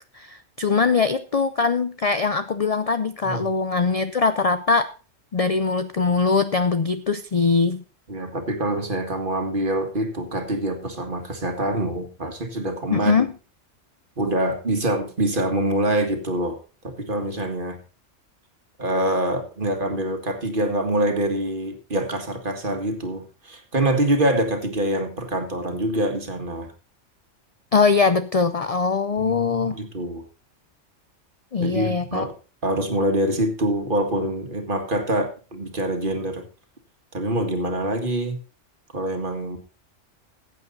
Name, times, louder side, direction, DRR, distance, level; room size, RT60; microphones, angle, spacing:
voice 1, 0.1-4.9 5.3-7.8 12.9-13.3 27.7-29.8 31.5-32.3, left 4 dB, 45° left, 11 dB, 0.5 m, -22 dB
voice 2, 8.1-13.2 14.2-16.6 16.8-17.8 18.8-26.7 29.2-30.2 31.6-32.4 32.6-36.4 37.1-38.4 38.9-39.6, right 1 dB, 45° right, 5 dB, 2.0 m, -25 dB
15.0 x 8.4 x 4.0 m, 0.34 s
omnidirectional pair, 1.3 m